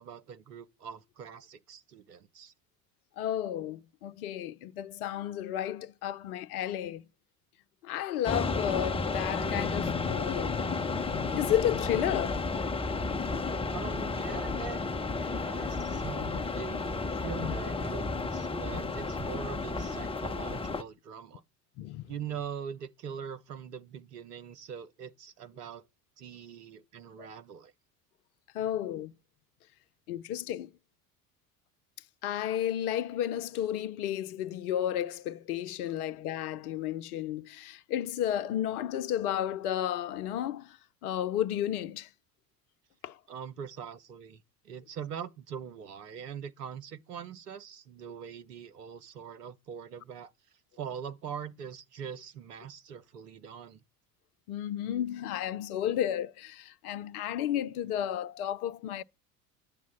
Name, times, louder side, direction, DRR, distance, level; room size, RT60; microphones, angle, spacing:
voice 1, 0.0-2.5 13.7-14.8 15.2-21.4 22.1-25.8 26.2-27.7 43.3-50.3 50.8-53.8, right 8 dB, 80° right, 1.1 m, -42 dB
voice 2, 3.2-7.0 7.8-12.5 15.4-15.5 16.2-16.4 17.4-17.5 18.7-18.8 20.2-20.3 21.8-22.1 27.2-27.3 28.5-29.1 30.1-30.7 32.2-42.1 43.0-43.2 54.5-59.0, left 11 dB, 70° left, 0.8 m, -32 dB
sound 1, 8.2-20.8, left 3 dB, 10° left, 0.9 m, -32 dB
10.5 x 7.3 x 7.2 m
hypercardioid pair, 70°, 47 cm